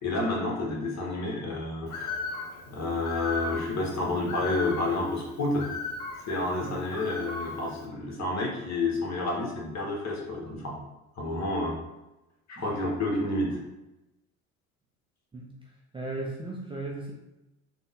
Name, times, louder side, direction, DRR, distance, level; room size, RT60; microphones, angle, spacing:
voice 1, 0.0-2.1 2.7-5.7 6.3-10.8 11.2-11.8 12.5-13.6, left 2 dB, 40° left, -2 dB, 1.3 m, -30 dB
Bird, 1.9-7.8, left 3 dB, 80° left, 0.9 m, -37 dB
voice 2, 15.9-17.1, right 2 dB, 15° right, -3 dB, 0.4 m, -36 dB
3.8 x 2.3 x 3.6 m, 0.96 s
hypercardioid pair, 70°, 43 cm